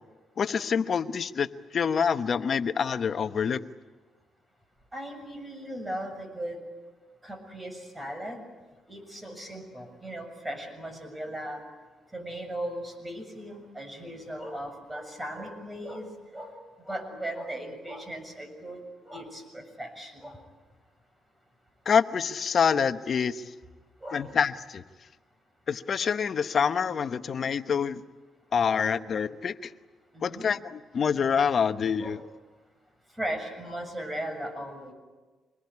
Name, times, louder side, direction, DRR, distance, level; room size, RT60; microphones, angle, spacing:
voice 1, 0.4-1.5 1.7-3.6 21.8-23.4 24.1-24.8 25.7-28.0 28.5-29.7 30.2-32.2, left 6 dB, 50° left, 10 dB, 1.1 m, -26 dB
voice 2, 4.9-6.6 7.2-8.4 8.9-11.6 12.1-16.5 16.8-20.4 24.0-24.2 30.1-30.4 32.0-32.2 33.2-34.9, right 1 dB, 15° right, 6 dB, 7.0 m, -37 dB
26.0 x 21.5 x 9.7 m, 1.3 s
cardioid pair, 90°, 0 cm